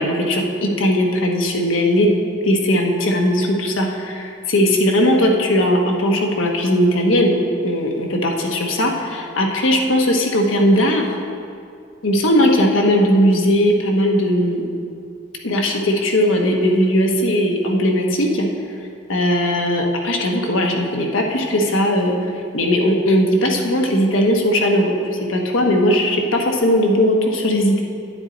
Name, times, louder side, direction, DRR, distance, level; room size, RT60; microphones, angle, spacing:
voice 1, 0.0-2.1 2.4-11.1 12.0-14.7 15.4-18.5 19.1-22.2 22.5-25.0 25.3-27.8, equal, 85° left, 1 dB, 1.1 m, -18 dB
9.7 x 9.1 x 3.9 m, 2.4 s
head